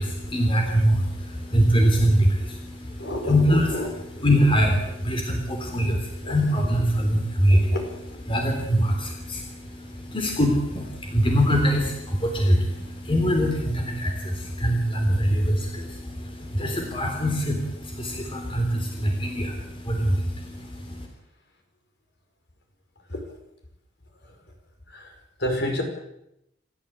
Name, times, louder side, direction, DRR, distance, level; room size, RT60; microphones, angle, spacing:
voice 1, 0.0-21.1, equal, 30° left, 2 dB, 3.6 m, -23 dB
voice 2, 3.0-3.9 6.2-6.4 7.5-7.9 25.4-25.8, left 1 dB, 60° left, 4 dB, 5.8 m, -29 dB
28.0 x 14.0 x 8.7 m, 0.84 s
head